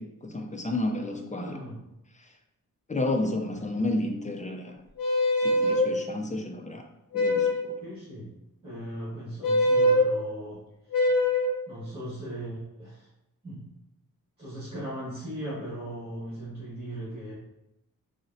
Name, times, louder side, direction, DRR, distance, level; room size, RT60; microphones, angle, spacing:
voice 1, 0.0-1.6 2.1-2.3 2.9-4.8 5.4-6.8 7.1-7.7, left 2 dB, 20° left, 3 dB, 0.4 m, -31 dB
voice 2, 1.3-1.8 3.2-3.3 7.8-10.6 10.9-11.0 11.7-13.1 13.4-13.6 14.4-17.3, right 1 dB, 15° right, -9 dB, 1.4 m, -38 dB
sound 1, 5.0-5.9 7.1-7.7 9.4-10.1 10.9-11.6, left 1 dB, 70° left, 0.7 m, -23 dB
3.7 x 2.1 x 2.6 m, 0.88 s
cardioid pair, 75°, 35 cm